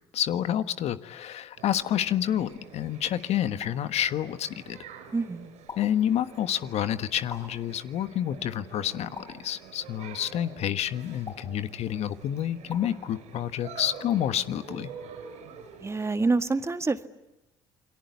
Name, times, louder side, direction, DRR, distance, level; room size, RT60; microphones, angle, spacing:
voice 1, 0.1-4.8 5.8-14.9, left 10 dB, 60° left, 11 dB, 1.4 m, -29 dB
sound 1, 1.6-16.1, right 6 dB, 65° right, 5.2 m, -47 dB
sound 2, 3.6-3.9 5.7-6.1 7.3-7.7 9.2-9.6 11.3-11.7 12.7-13.0, left 4 dB, 35° left, 7.2 m, -43 dB
voice 2, 5.1-5.5 15.8-17.1, right 3 dB, 20° right, 10 dB, 1.8 m, -27 dB
29.5 x 22.5 x 8.3 m, 0.95 s
hypercardioid pair, 60°, 13 cm